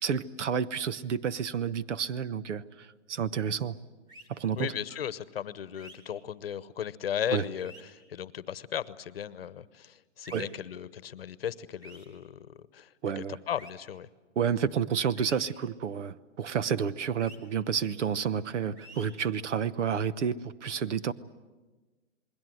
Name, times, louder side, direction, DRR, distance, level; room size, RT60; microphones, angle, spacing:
voice 1, 0.0-2.6 3.1-3.8 4.3-4.7 7.3-7.4 10.3-10.5 13.0-13.4 14.4-21.1, right 7 dB, 70° right, 16 dB, 1.1 m, -30 dB
sound 1, 4.1-4.3 5.7-6.0 7.5-7.8 10.2-10.4 11.8-12.1 13.5-13.7 15.2-15.4 17.2-17.4 18.8-19.1, equal, 10° right, 2.4 m, -49 dB
voice 2, 4.6-12.9 13.2-14.1, left 9 dB, 50° left, 16 dB, 1.0 m, -36 dB
28.5 x 21.0 x 7.8 m, 1.3 s
hypercardioid pair, 175°, 37 cm